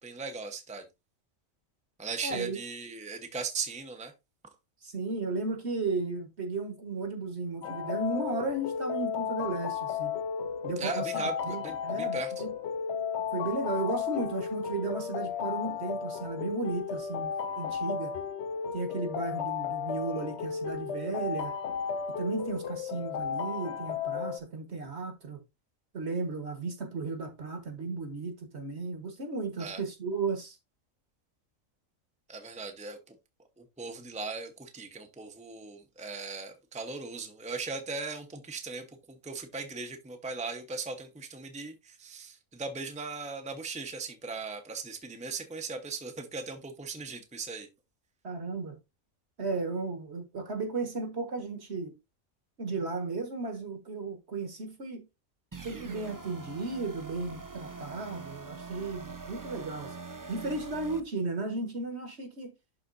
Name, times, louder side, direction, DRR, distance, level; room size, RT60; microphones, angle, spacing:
voice 1, 0.0-0.9 2.0-4.1 10.8-12.3 29.6-29.8 32.3-33.2 33.6-47.7, right 4 dB, 5° right, 0.9 m, -38 dB
voice 2, 2.2-2.6 4.8-10.1 10.6-11.1 11.4-12.5 13.3-18.2 18.7-21.5 22.2-25.4 25.9-30.6 48.2-48.8 49.4-51.9 52.6-55.0 55.6-59.9 60.3-62.5, right 3 dB, 50° right, 1.8 m, -34 dB
sound 1, 7.6-24.4, left 7 dB, 65° left, 0.8 m, -34 dB
sound 2, 55.5-61.0, right 4 dB, 25° right, 0.4 m, -43 dB
11.5 x 4.1 x 2.6 m
omnidirectional pair, 1.4 m